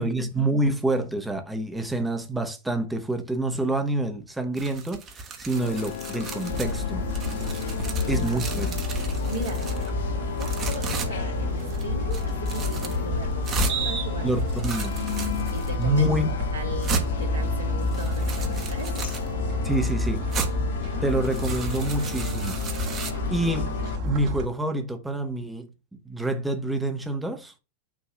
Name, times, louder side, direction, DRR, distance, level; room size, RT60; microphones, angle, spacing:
voice 1, 0.0-7.1 8.1-8.7 14.2-15.0 15.8-16.4 19.6-20.2 21.0-22.6 23.3-23.8 24.0-25.7 26.0-27.5, right 1 dB, 5° right, 1.1 m, -27 dB
sound 1, 4.6-6.8 7.1-9.9 10.4-11.1 11.6-11.8 12.1-13.0 13.4-13.8 14.4-15.7 16.3-16.4 16.8-17.1 17.8-19.3 20.3-20.5 21.1-23.1, right 2 dB, 30° right, 1.4 m, -33 dB
sound 2, 5.5-24.0, left 10 dB, 60° left, 0.5 m, -36 dB
sound 3, 6.5-24.5, left 1 dB, 45° right, 1.8 m, -29 dB
voice 2, 7.8-8.8 9.3-9.6 10.2-14.5 14.8-14.9 15.5-16.1 16.5-19.1, right 1 dB, 85° right, 2.1 m, -38 dB
6.3 x 3.1 x 5.7 m
figure-of-eight pair, 90°, 0 cm